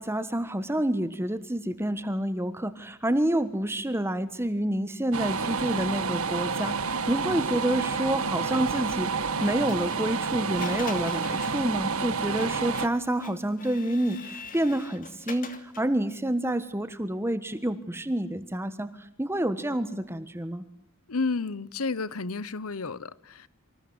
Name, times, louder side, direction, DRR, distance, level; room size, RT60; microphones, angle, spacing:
voice 1, 0.0-9.1 9.4-20.6, right 1 dB, 10° right, 1.4 m, -28 dB
sound 1, 5.1-12.9, right 5 dB, 80° right, 1.9 m, -29 dB
Printer, 8.7-16.0, left 5 dB, 40° left, 2.9 m, -45 dB
voice 2, 21.1-23.5, left 4 dB, 90° left, 1.0 m, -31 dB
27.5 x 26.0 x 8.0 m
head